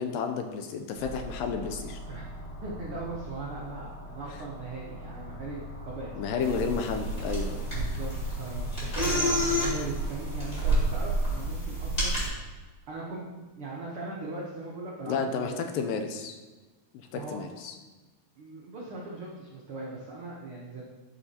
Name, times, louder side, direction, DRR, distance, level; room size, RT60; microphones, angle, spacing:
voice 1, 0.0-2.0 6.1-7.7 15.1-16.4 16.9-17.7, left 5 dB, 85° left, 5 dB, 2.2 m, -32 dB
sound 1, 1.0-11.4, left 1 dB, 35° left, 3.4 m, -43 dB
voice 2, 2.6-6.1 7.7-12.5 12.9-15.6 17.1-17.4 18.4-20.8, right 3 dB, 70° right, -4 dB, 1.3 m, -39 dB
sound 2, 6.4-12.3, right 1 dB, 15° left, 2.5 m, -29 dB
12.5 x 5.6 x 2.8 m, 1.2 s
omnidirectional pair, 4.0 m